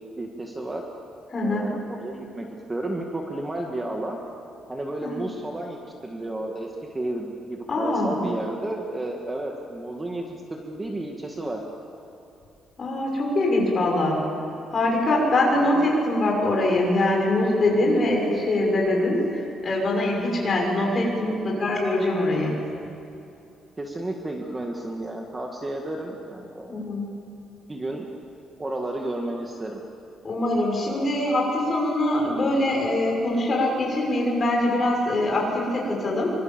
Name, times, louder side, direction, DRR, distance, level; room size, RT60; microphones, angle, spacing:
voice 1, 0.1-0.8 1.4-4.3 4.7-6.7 6.9-11.6 15.5-16.0 23.8-26.8 27.7-28.1 28.6-29.8, right 1 dB, 15° right, 1 dB, 1.7 m, -32 dB
voice 2, 1.3-1.7 5.0-5.1 7.7-8.1 12.8-14.2 14.7-22.5 26.7-27.0 30.2-36.3, left 1 dB, 25° left, -1 dB, 6.2 m, -23 dB
27.0 x 25.0 x 7.3 m, 2.7 s
cardioid pair, 175°, 0 cm